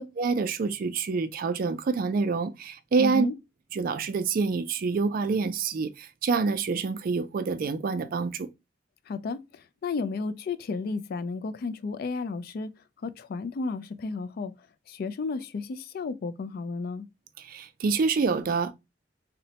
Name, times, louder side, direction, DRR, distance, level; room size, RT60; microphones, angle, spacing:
voice 1, 0.0-3.3 3.7-8.5 17.4-18.7, right 4 dB, 50° right, 0.3 m, -27 dB
voice 2, 3.0-3.3 9.1-12.7 13.0-14.5 14.9-17.1, left 4 dB, 50° left, 0.3 m, -33 dB
3.9 x 2.1 x 2.7 m
head